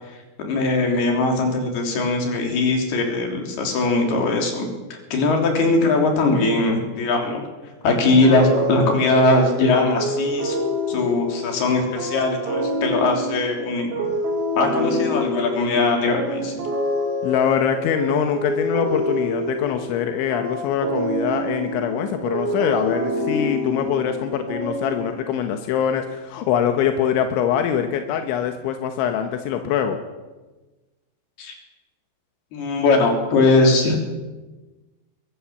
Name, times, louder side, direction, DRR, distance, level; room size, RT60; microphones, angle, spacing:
voice 1, 0.4-4.7 5.1-7.4 7.8-10.6 10.9-14.1 14.6-16.5 31.4-31.5 32.5-34.0, left 2 dB, 60° left, 2 dB, 5.2 m, -20 dB
sound 1, 8.2-25.4, equal, 60° right, 4.2 m, -27 dB
voice 2, 17.2-30.0, left 8 dB, 85° left, 6 dB, 3.6 m, -23 dB
22.0 x 16.5 x 7.2 m, 1.2 s
omnidirectional pair, 5.2 m